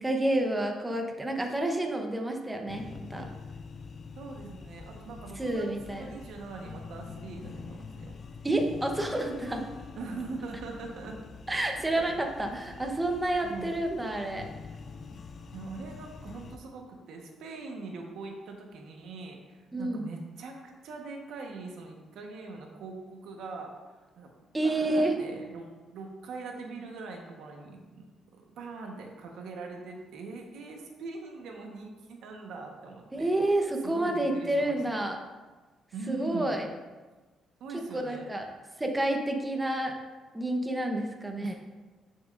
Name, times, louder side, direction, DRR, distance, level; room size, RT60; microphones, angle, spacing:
voice 1, 0.0-2.8 3.1-3.2 5.4-6.1 8.4-9.6 11.5-14.4 19.7-20.1 24.5-25.2 33.1-35.2 36.1-36.7 37.9-38.5 38.8-39.9 40.3-41.5, right 1 dB, 15° right, 3 dB, 1.0 m, -29 dB
sound 1, 2.7-16.6, left 5 dB, 50° left, 0.6 m, -45 dB
voice 2, 4.2-8.1 10.0-11.2 11.7-12.0 13.4-13.7 15.5-23.7 24.2-24.3 24.6-35.0 35.9-36.7 37.6-38.3 41.4-41.5, right 3 dB, 80° right, 2 dB, 1.2 m, -42 dB
9.9 x 7.2 x 2.6 m, 1.3 s
cardioid pair, 90°, 0 cm